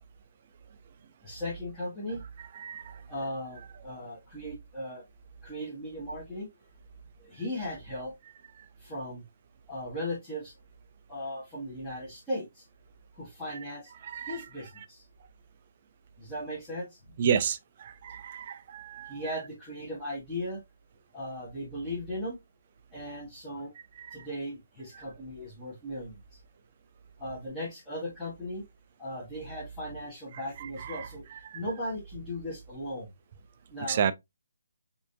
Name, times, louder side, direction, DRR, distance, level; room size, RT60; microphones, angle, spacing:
voice 1, 1.2-2.2 3.1-5.0 5.4-6.5 7.3-8.1 8.8-9.2 9.7-10.5 11.1-12.6 13.2-13.8 14.3-15.0 16.2-16.9 19.1-20.6 21.1-22.3 22.9-23.7 24.1-26.2 27.2-28.6 29.0-31.2 31.5-33.1 33.7-34.1, left 1 dB, 5° left, 1.4 m, -37 dB
voice 2, 2.5-3.0 14.0-14.5 17.2-19.3 24.0-24.3 30.6-31.6 33.9-34.1, right 7 dB, 40° right, 0.4 m, -32 dB
4.8 x 2.8 x 2.5 m
figure-of-eight pair, 145°, 0 cm